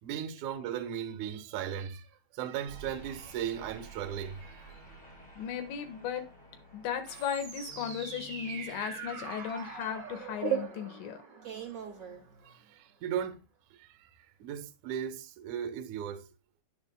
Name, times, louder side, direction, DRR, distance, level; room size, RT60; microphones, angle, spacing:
voice 1, 0.0-4.7 12.4-13.4 13.7-16.3, right 9 dB, 80° right, 1.7 m, -37 dB
sound 1, 2.7-11.2, right 3 dB, 10° left, 3.9 m, -52 dB
voice 2, 5.4-6.3 6.7-11.2, left 8 dB, 75° left, 3.7 m, -36 dB
Game Over, 7.0-12.7, right 7 dB, 55° right, 0.9 m, -39 dB
10.5 x 9.8 x 2.2 m
omnidirectional pair, 5.5 m